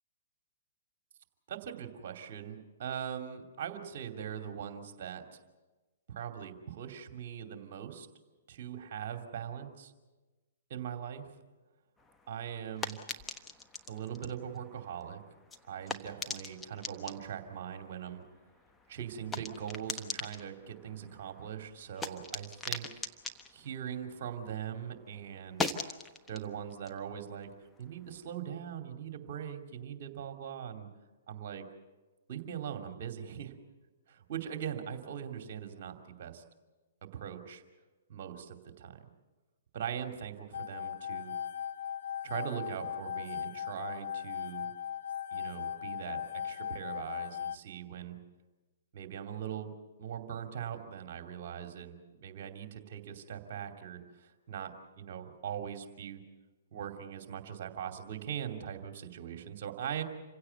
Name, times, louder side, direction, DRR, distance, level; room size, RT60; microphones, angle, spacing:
voice 1, 1.5-5.2 6.1-8.1 8.5-9.9 10.7-11.3 12.3-13.0 13.9-15.2 15.7-18.2 18.9-22.9 23.5-26.0 26.3-27.5 27.8-30.9 31.3-31.7 32.3-33.5 34.1-36.4 37.0-37.6 38.1-39.1 39.7-41.3 42.2-44.7 45.3-48.2 48.9-49.7 50.0-56.2 56.7-60.0, right 9 dB, 50° right, 5 dB, 2.7 m, -41 dB
sound 1, 12.0-24.8 25.0-28.3, left 3 dB, 10° left, 1.2 m, -43 dB
sound 2, 40.5-47.6, left 9 dB, 60° left, 0.6 m, -38 dB
27.0 x 16.5 x 8.1 m, 1.2 s
figure-of-eight pair, 120°, 0 cm